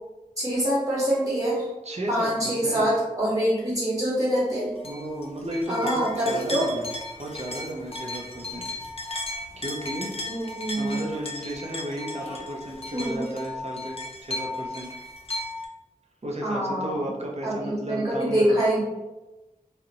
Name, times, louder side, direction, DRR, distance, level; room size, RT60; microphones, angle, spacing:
voice 1, 0.4-1.7 2.1-4.7 5.7-6.7 10.3-11.0 12.9-13.3 16.4-17.1 17.4-18.8, right 1 dB, 25° right, -8 dB, 1.2 m, -25 dB
voice 2, 1.8-2.9 4.8-6.9 7.2-8.7 9.3-10.1 10.8-14.9 16.2-18.6, right 1 dB, 50° right, -1 dB, 0.5 m, -34 dB
sound 1, 4.8-15.7, left 1 dB, 45° left, 0.4 m, -36 dB
2.5 x 2.1 x 2.8 m, 1.1 s
wide cardioid pair, 45°, 14 cm